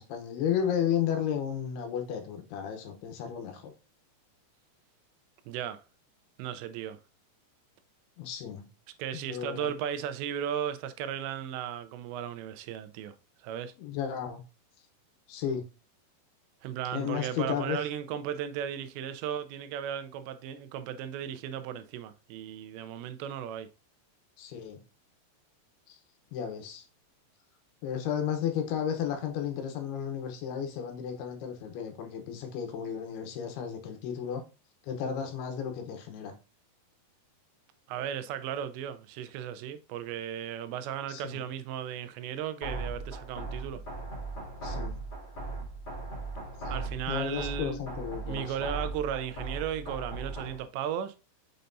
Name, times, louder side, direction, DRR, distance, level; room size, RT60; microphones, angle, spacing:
voice 1, 0.0-3.7 8.2-8.6 9.1-9.7 13.8-14.4 15.3-15.6 16.9-17.8 24.4-24.8 25.9-26.0 26.3-26.8 27.8-34.4 34.9-36.3 41.1-41.5 44.6-45.0 47.1-48.5, left 8 dB, 75° left, 2.8 m, -33 dB
voice 2, 5.5-5.8 6.4-7.0 9.0-13.2 13.4-13.7 16.6-23.7 37.9-43.8 46.7-47.8 48.2-51.2, right 9 dB, 90° right, 2.9 m, -35 dB
sound 1, 42.6-50.6, right 2 dB, 30° left, 2.3 m, -38 dB
6.6 x 5.6 x 2.6 m
omnidirectional pair, 4.9 m